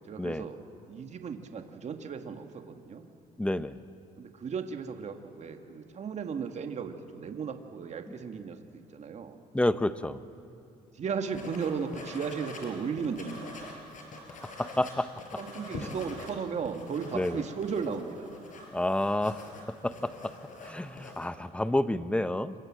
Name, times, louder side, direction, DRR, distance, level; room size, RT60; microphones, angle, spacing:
voice 1, 0.1-0.6 0.9-3.1 4.2-9.4 10.9-13.5 15.4-18.3, right 6 dB, 45° right, 6 dB, 2.0 m, -35 dB
voice 2, 3.4-3.8 9.5-10.2 14.3-15.1 17.1-17.4 18.7-19.4 19.7-20.3 20.6-22.5, left 1 dB, 5° left, 13 dB, 0.8 m, -29 dB
sound 1, 11.3-12.7 13.0-16.3 16.6-21.3, left 2 dB, 50° left, 5.5 m, -44 dB
28.0 x 24.5 x 7.7 m, 2.5 s
cardioid pair, 110°, 17 cm